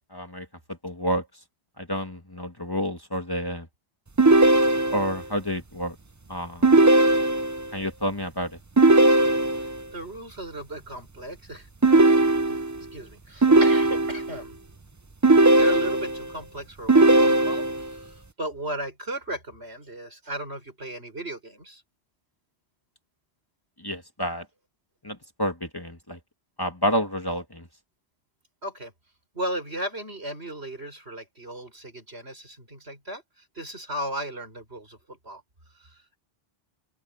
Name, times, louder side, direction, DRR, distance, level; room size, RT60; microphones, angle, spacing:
voice 1, 0.1-0.5 0.8-1.3 1.8-3.7 4.9-6.0 6.3-6.7 7.7-8.6 23.8-24.5 25.0-26.2 26.6-27.7, equal, 20° left, 1.9 m, -29 dB
sound 1, 4.2-5.2 6.6-7.7 8.8-9.8 11.8-12.8 13.4-14.4 15.2-16.3 16.9-17.9, right 2 dB, 20° right, 0.6 m, -18 dB
voice 2, 9.6-12.1 12.5-12.6 12.9-14.6 15.6-21.8 28.6-28.9 29.3-35.4 35.7-36.2, right 1 dB, 80° right, 7.3 m, -36 dB
open air
omnidirectional pair, 1.1 m